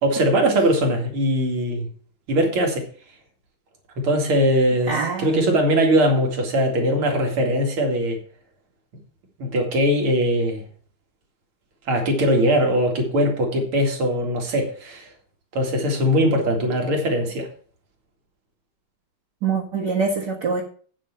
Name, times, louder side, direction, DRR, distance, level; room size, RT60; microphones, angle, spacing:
voice 1, 0.0-1.9 2.3-2.8 4.0-8.2 9.4-10.6 11.9-15.1 15.5-17.5, equal, 85° right, 3.2 m, -21 dB
voice 2, 4.9-5.5 19.4-20.6, right 5 dB, 55° right, 2.1 m, -24 dB
8.7 x 7.7 x 5.9 m
omnidirectional pair, 2.3 m